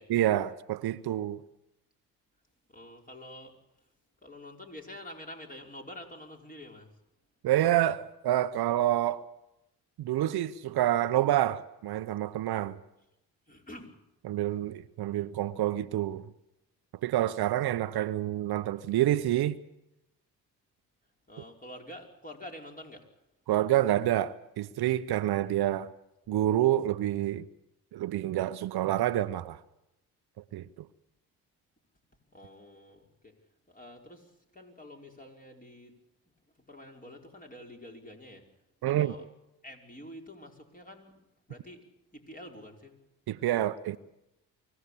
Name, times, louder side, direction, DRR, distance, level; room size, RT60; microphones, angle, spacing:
voice 1, 0.1-1.4 7.4-9.2 10.0-12.8 14.2-16.2 17.0-19.6 23.5-25.9 26.3-27.4 27.9-29.6 30.5-30.7 38.8-39.1 43.3-44.0, right 13 dB, 65° right, 0.9 m, -28 dB
voice 2, 2.7-3.5 4.2-6.9 13.5-13.9 21.3-23.1 32.3-33.3 33.7-35.9 36.6-38.4 38.8-39.3 39.6-41.1 41.5-41.8 42.1-42.9, left 1 dB, 20° left, 5.1 m, -47 dB
24.0 x 16.5 x 8.5 m
supercardioid pair, 55°, 41 cm